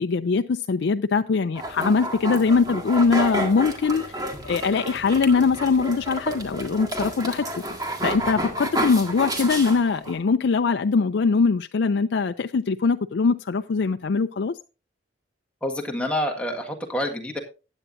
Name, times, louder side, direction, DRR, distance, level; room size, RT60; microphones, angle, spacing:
voice 1, 0.0-4.1 4.4-7.5 8.0-14.5, left 4 dB, 65° left, 0.4 m, -22 dB
sound 1, 1.5-10.2, right 1 dB, 20° right, 1.7 m, -30 dB
voice 2, 15.6-17.4, left 1 dB, 5° left, 1.6 m, -27 dB
15.5 x 9.1 x 2.6 m
head